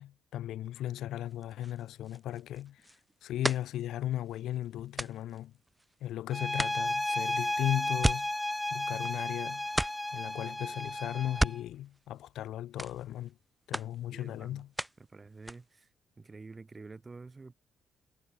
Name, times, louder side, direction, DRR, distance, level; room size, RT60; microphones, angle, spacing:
voice 1, 0.0-2.9 3.2-5.6 6.0-9.8 10.1-13.4 13.7-14.7, left 13 dB, 80° left, 4.7 m, -36 dB
sound 1, 1.3-6.1 6.5-9.4 9.7-10.3 11.2-12.5 12.8-13.4 13.7-15.1 15.3-15.8, right 1 dB, 5° right, 3.1 m, -36 dB
sound 2, 6.3-11.6, left 1 dB, 10° left, 1.2 m, -33 dB
voice 2, 14.1-14.6 15.1-15.9 16.2-17.5, right 3 dB, 25° right, 3.2 m, -48 dB
cardioid pair, 90°, 0 cm